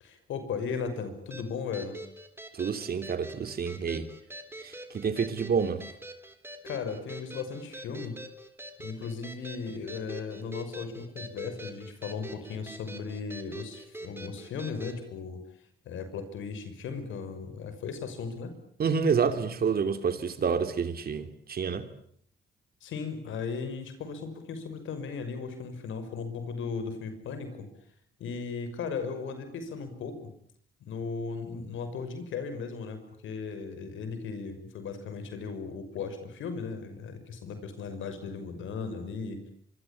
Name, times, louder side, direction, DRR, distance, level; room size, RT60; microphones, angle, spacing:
voice 1, 0.0-2.0 6.6-8.2 8.8-15.4 15.9-18.5 22.8-27.7 28.2-30.3 30.8-39.4, left 5 dB, 80° left, 6.0 m, -36 dB
sound 1, 1.3-15.0, right 1 dB, 10° right, 3.9 m, -45 dB
voice 2, 2.6-4.1 4.6-5.8 18.8-21.9, right 6 dB, 50° right, 3.0 m, -28 dB
25.0 x 24.5 x 8.6 m
cardioid pair, 90°, 20 cm